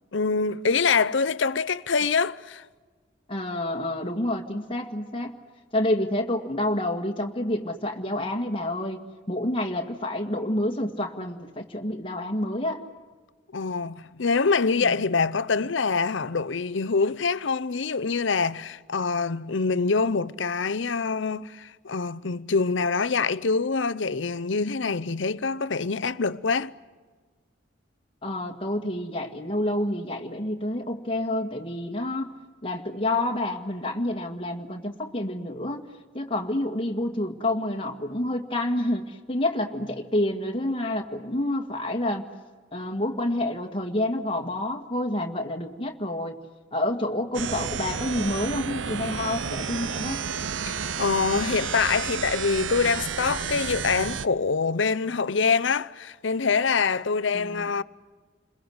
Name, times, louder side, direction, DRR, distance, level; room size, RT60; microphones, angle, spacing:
voice 1, 0.1-2.6 13.5-26.7 50.7-57.8, left 4 dB, 65° left, 0.7 m, -25 dB
voice 2, 3.3-5.3 5.7-9.0 9.3-12.8 14.8-15.1 28.2-32.3 32.6-35.9 36.1-42.2 42.7-46.4 46.7-50.2 57.3-57.7, left 1 dB, 25° left, 1.9 m, -28 dB
sound 1, 47.3-54.3, right 6 dB, 70° right, 0.7 m, -31 dB
29.0 x 21.5 x 8.0 m
head